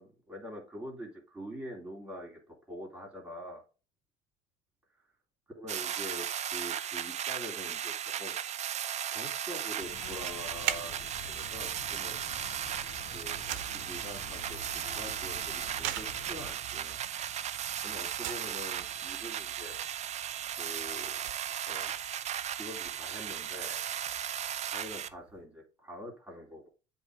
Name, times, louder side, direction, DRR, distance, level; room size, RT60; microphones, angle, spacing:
voice 1, 0.0-3.6 5.5-8.4 9.1-12.2 13.1-17.0 17.8-19.8 20.6-21.2 21.7-21.9 22.5-23.8 24.7-26.7, equal, 5° right, -1 dB, 2.8 m, -45 dB
sound 1, 5.7-25.1, right 10 dB, 35° right, 0.5 m, -36 dB
sound 2, 9.8-16.5, left 5 dB, 65° left, 1.5 m, -48 dB
sound 3, 10.3-25.5, right 13 dB, 65° right, 0.8 m, -45 dB
7.9 x 2.9 x 4.7 m, 0.33 s
supercardioid pair, 110°, 20 cm